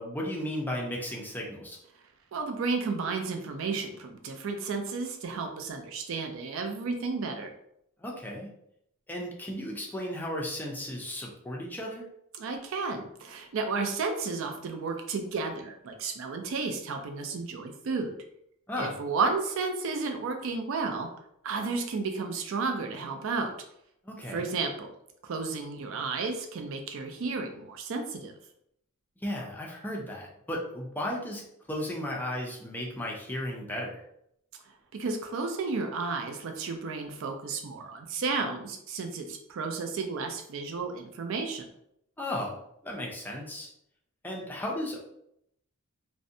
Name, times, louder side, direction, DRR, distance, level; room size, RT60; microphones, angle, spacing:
voice 1, 0.0-1.8 8.0-8.5 9.1-12.1 18.7-19.0 24.0-24.5 29.2-31.4 31.7-34.0 42.2-43.7 44.2-45.0, left 1 dB, 10° left, -2 dB, 0.4 m, -35 dB
voice 2, 2.3-7.5 12.4-18.1 18.7-21.1 21.4-23.5 24.3-24.9 25.2-28.3 34.9-41.6, right 4 dB, 65° right, 5 dB, 0.4 m, -32 dB
2.5 x 2.1 x 2.6 m, 0.74 s
head